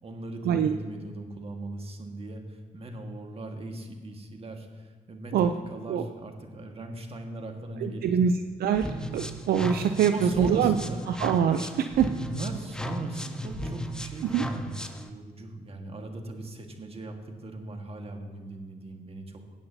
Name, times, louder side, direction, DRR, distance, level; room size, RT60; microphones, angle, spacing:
voice 1, 0.0-8.2 10.0-11.0 12.1-19.4, right 2 dB, 35° right, 3 dB, 1.7 m, -38 dB
voice 2, 7.8-8.3 8.6-8.9 9.1-10.7 11.1-12.1 14.2-14.4, right 8 dB, 70° right, 8 dB, 0.5 m, -24 dB
sound 1, 8.7-15.1, equal, 5° left, 0.9 m, -36 dB
16.5 x 8.5 x 2.8 m, 1.5 s
supercardioid pair, 65°, 17 cm